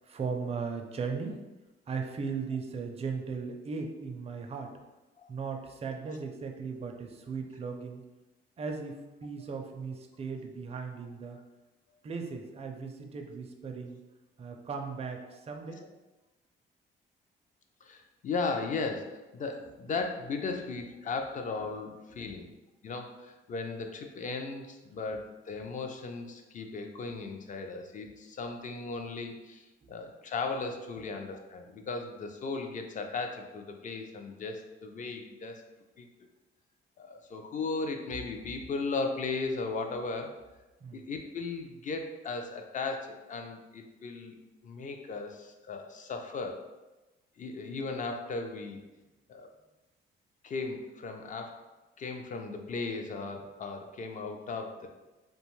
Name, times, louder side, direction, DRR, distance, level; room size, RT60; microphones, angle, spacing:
voice 1, 0.1-1.4 1.9-4.7 5.3-8.0 8.6-11.4 12.0-14.0 14.4-15.8 22.3-22.4 29.8-29.9 40.8-41.0, right 5 dB, 30° right, 3 dB, 0.4 m, -37 dB
voice 2, 17.8-22.5 22.8-35.6 36.0-36.1 37.0-40.4 40.9-44.4 44.6-46.7 47.4-48.8 49.3-49.5 50.4-51.6 52.0-54.9, left 4 dB, 40° left, 4 dB, 0.4 m, -36 dB
2.5 x 2.2 x 3.0 m, 1.1 s
cardioid pair, 90°, 20 cm